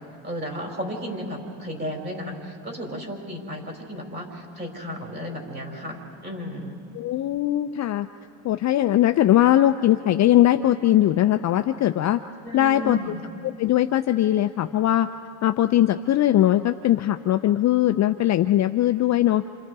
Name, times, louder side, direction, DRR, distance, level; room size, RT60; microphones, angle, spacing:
voice 1, 0.2-6.8 12.4-13.2, equal, 20° right, 1 dB, 4.9 m, -34 dB
voice 2, 6.9-8.1 8.4-12.2 12.5-13.0 13.4-15.1 15.4-19.4, left 13 dB, 35° left, 8 dB, 0.6 m, -20 dB
28.5 x 27.5 x 4.8 m, 2.5 s
supercardioid pair, 115°, 46 cm